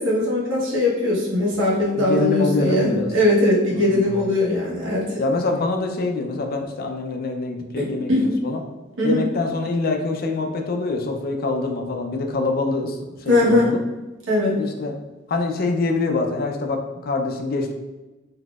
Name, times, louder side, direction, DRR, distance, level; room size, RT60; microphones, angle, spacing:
voice 1, 0.0-5.2 7.8-8.2 9.0-9.2 13.3-13.7 14.3-14.5, left 1 dB, 80° right, -4 dB, 1.1 m, -20 dB
voice 2, 2.0-3.1 3.7-4.3 5.2-8.6 9.0-13.8 14.6-15.0 15.3-17.7, left 3 dB, 50° left, 4 dB, 0.4 m, -25 dB
4.0 x 2.7 x 2.3 m, 1.1 s
head